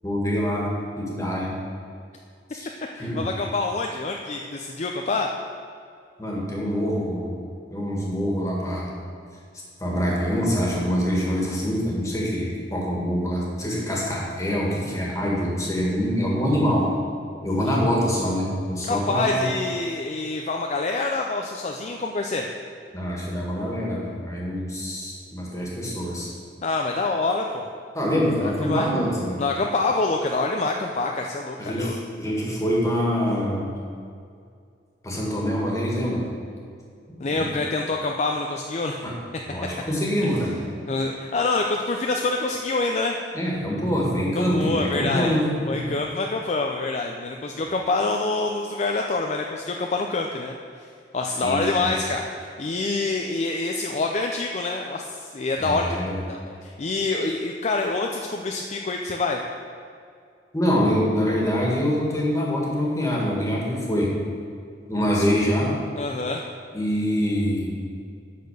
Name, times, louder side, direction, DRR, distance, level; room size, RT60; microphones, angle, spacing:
voice 1, 0.0-0.7 1.0-1.5 2.5-2.7 3.0-3.3 6.2-7.4 7.7-8.9 9.8-16.9 17.4-19.5 22.9-26.3 27.9-29.4 31.6-33.8 35.0-36.2 37.3-37.5 39.0-39.1 39.5-40.6 43.3-45.9 51.4-51.9 55.6-56.2 60.5-64.2 64.9-65.8 66.7-67.8, equal, 20° left, -3 dB, 1.8 m, -25 dB
voice 2, 2.9-5.3 18.9-22.5 26.6-27.7 28.4-28.9 29.4-32.0 37.2-39.0 40.9-43.2 44.4-45.4 45.7-50.9 51.1-59.4 65.1-65.2 66.0-66.4, left 3 dB, 40° left, 2 dB, 0.5 m, -26 dB
10.0 x 4.3 x 6.7 m, 2.3 s
head